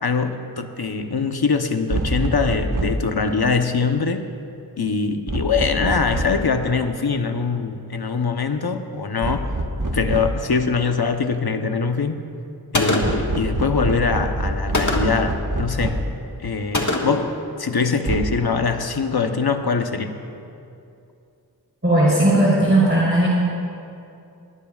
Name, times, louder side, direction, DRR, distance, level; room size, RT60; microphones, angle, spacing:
voice 1, 0.0-4.3 4.8-9.5 9.9-12.2 12.7-16.0 16.4-20.2, left 4 dB, 70° left, 6 dB, 1.0 m, -23 dB
sound 1, 1.9-3.1 5.3-6.5 9.2-10.5 13.0-16.2 18.1-18.2, right 1 dB, 55° right, 1.4 m, -25 dB
Gunshot gunfire, 12.7-13.3 14.7-15.3 16.7-17.3, left 2 dB, 50° left, 1.7 m, -22 dB
voice 2, 21.8-23.3, right 1 dB, 30° right, -7 dB, 3.9 m, -16 dB
21.0 x 19.5 x 2.4 m, 2.6 s
wide cardioid pair, 50°, 39 cm